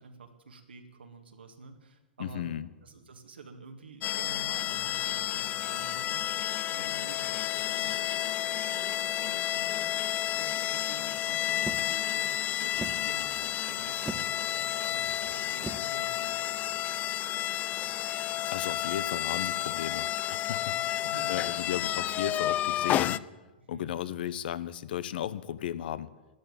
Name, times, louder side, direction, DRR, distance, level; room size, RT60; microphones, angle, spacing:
voice 1, 0.0-2.5 2.8-9.9 10.3-16.6 20.8-21.6 23.7-24.0, right 4 dB, 80° right, 4 dB, 1.9 m, -49 dB
voice 2, 2.2-2.7 18.5-21.0 21.3-23.2 23.7-26.1, left 11 dB, 65° left, 16 dB, 0.8 m, -35 dB
sound 1, 4.0-23.2, left 13 dB, 30° left, 0.5 m, -31 dB
sound 2, 11.6-17.2, right 3 dB, 10° right, 0.9 m, -44 dB
13.0 x 11.0 x 8.7 m, 1.1 s
hypercardioid pair, 105°, 6 cm